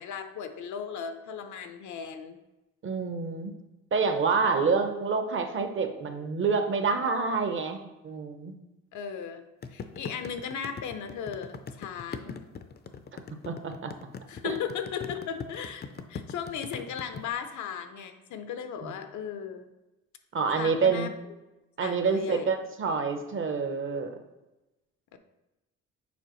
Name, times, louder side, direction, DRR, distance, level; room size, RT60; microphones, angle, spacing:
voice 1, 0.0-2.4 8.9-9.4 9.7-12.4 14.3-19.7 20.5-21.1 21.8-22.5 25.1-25.2, left 7 dB, 75° left, 8 dB, 0.7 m, -36 dB
voice 2, 2.8-3.5 3.9-7.8 8.0-8.5 13.5-13.9 14.4-14.5 18.8-18.9 20.3-21.1 21.8-24.1, right 5 dB, 40° right, 6 dB, 0.8 m, -27 dB
sound 1, 9.6-17.2, left 5 dB, 35° left, 0.5 m, -40 dB
7.1 x 4.5 x 3.1 m, 0.99 s
cardioid pair, 90°, 30 cm